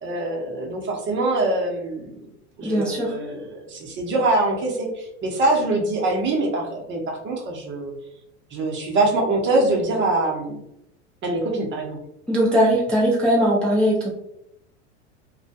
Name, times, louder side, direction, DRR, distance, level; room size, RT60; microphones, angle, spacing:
voice 1, 0.0-2.1 2.6-7.9 8.5-10.6 11.2-12.0, right 2 dB, 35° right, 0 dB, 0.7 m, -24 dB
voice 2, 2.6-3.2 12.3-14.1, equal, 5° left, -6 dB, 0.4 m, -20 dB
2.2 x 2.2 x 2.7 m, 0.79 s
hypercardioid pair, 95°, 35 cm